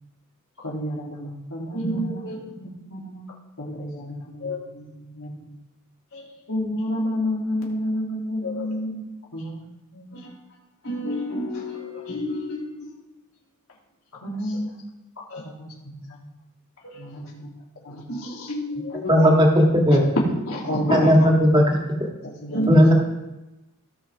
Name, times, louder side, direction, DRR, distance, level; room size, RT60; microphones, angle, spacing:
voice 1, 0.6-3.2 3.6-5.5 6.5-9.1 9.3-9.7 9.9-10.2 14.1-14.8 15.3-16.2 16.9-17.5 17.8-18.5 19.9-20.0 20.5-21.3 22.2-22.9, left 1 dB, 90° left, -3 dB, 2.8 m, -31 dB
voice 2, 1.7-2.4 4.4-4.6 6.1-6.3 8.4-8.6 10.1-10.3 10.8-12.9 15.3-15.4 16.8-17.0 18.1-19.3 22.5-22.7, equal, 70° left, -8 dB, 3.2 m, -30 dB
voice 3, 19.1-20.0 20.9-21.6 22.7-22.9, equal, 20° right, 0 dB, 1.7 m, -15 dB
17.5 x 6.1 x 3.4 m, 1.0 s
head